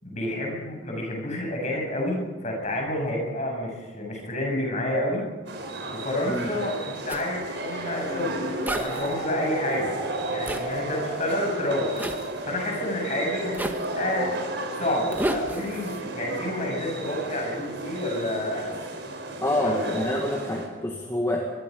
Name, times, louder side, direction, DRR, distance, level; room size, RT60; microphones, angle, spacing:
voice 1, 0.0-5.2 5.9-9.9 10.3-12.0 12.4-14.3 14.7-18.7 19.6-20.0, left 1 dB, 35° left, 0 dB, 7.4 m, -29 dB
sound 1, 5.5-20.7, right 2 dB, 65° right, 4.8 m, -34 dB
Zipper (clothing), 7.1-7.3 8.7-9.1 10.5-10.7 12.0-12.3 13.5-13.9 15.1-16.0, right 1 dB, 10° right, 1.4 m, -30 dB
sound 2, 8.1-14.9, right 1 dB, 40° right, 5.1 m, -37 dB
voice 2, 19.4-21.5, left 1 dB, 15° left, 0 dB, 2.0 m, -27 dB
23.5 x 23.5 x 5.3 m, 1.3 s
head